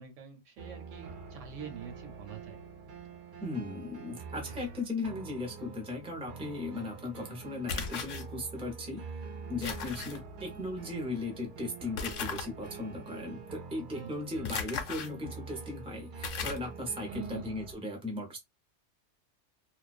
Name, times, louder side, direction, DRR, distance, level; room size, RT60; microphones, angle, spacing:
voice 1, 0.0-2.6 10.0-10.1 13.9-14.1 17.0-17.5, right 7 dB, 90° right, 1.1 m, -45 dB
sound 1, 0.6-17.7, right 5 dB, 55° right, 0.6 m, -46 dB
voice 2, 3.4-9.1 9.5-18.4, left 2 dB, 5° right, 0.6 m, -37 dB
sound 2, 7.7-8.2 9.6-10.2 12.0-12.5 14.5-15.1 15.7-15.8 16.2-16.7, left 6 dB, 90° left, 1.0 m, -36 dB
2.4 x 2.2 x 2.4 m
omnidirectional pair, 1.3 m